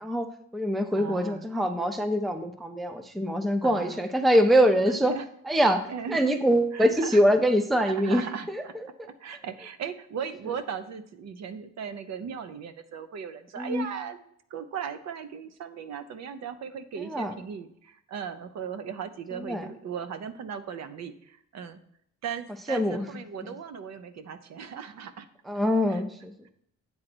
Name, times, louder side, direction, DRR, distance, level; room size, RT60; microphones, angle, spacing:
voice 1, 0.0-5.1 5.5-5.8 6.1-8.2 8.5-8.6 9.0-9.1 13.6-13.9 17.0-17.3 19.3-19.7 22.7-23.1 25.5-26.3, equal, ahead, 8 dB, 0.4 m, -24 dB
voice 2, 0.9-1.5 3.6-4.0 4.9-5.2 5.9-6.3 6.7-7.2 7.8-8.7 9.2-14.2 14.5-21.8 22.2-25.3 25.9-26.0, right 7 dB, 55° right, 11 dB, 0.7 m, -37 dB
8.8 x 3.9 x 6.0 m, 0.70 s
cardioid pair, 145°, 32 cm